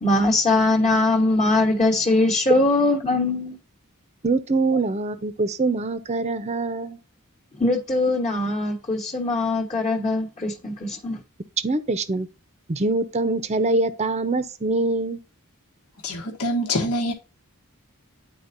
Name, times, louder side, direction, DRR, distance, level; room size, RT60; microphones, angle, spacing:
voice 1, 0.0-3.6 7.6-11.2, left 2 dB, 30° left, 1.2 m, -21 dB
voice 2, 4.2-7.0 11.6-12.3 12.7-15.2, right 3 dB, 30° right, 0.6 m, -24 dB
voice 3, 16.0-17.1, equal, 85° left, 1.5 m, -25 dB
10.5 x 4.2 x 2.6 m
head